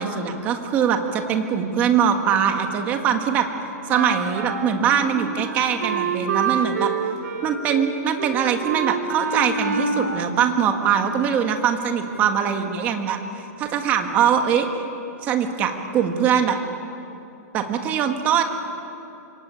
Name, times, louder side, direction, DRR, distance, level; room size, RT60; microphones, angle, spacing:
voice 1, 0.0-3.5 3.8-6.9 7.4-13.2 13.6-14.7 15.3-16.6 17.5-18.4, right 8 dB, 20° right, 6 dB, 1.6 m, -22 dB
Wind instrument woodwind instrument, 3.9-11.1, right 5 dB, 75° right, 3.2 m, -27 dB
26.5 x 23.5 x 8.9 m, 2.8 s
hypercardioid pair, 180°, 9 cm